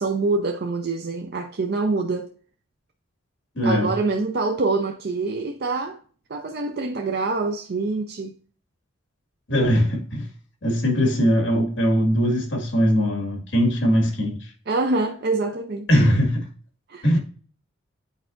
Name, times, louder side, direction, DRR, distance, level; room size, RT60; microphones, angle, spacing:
voice 1, 0.0-2.3 3.6-6.0 6.3-8.3 14.7-16.0 16.9-17.1, right 3 dB, 50° right, 0.5 m, -25 dB
voice 2, 3.6-3.9 9.5-10.3 10.6-14.5 15.9-16.5 17.0-17.2, equal, 60° left, 1.9 m, -20 dB
8.2 x 4.7 x 2.5 m
head